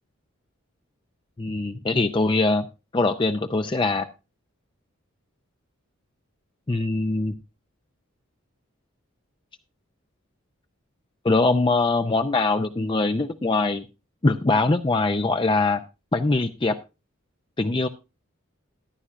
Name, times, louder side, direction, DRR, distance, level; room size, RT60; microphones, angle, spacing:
voice 1, 1.4-2.7 2.9-4.1 6.7-7.3 11.2-13.8 14.2-15.8 16.1-16.8 17.6-17.9, left 3 dB, 20° left, 7 dB, 0.5 m, -22 dB
14.0 x 11.5 x 2.4 m, 0.28 s
head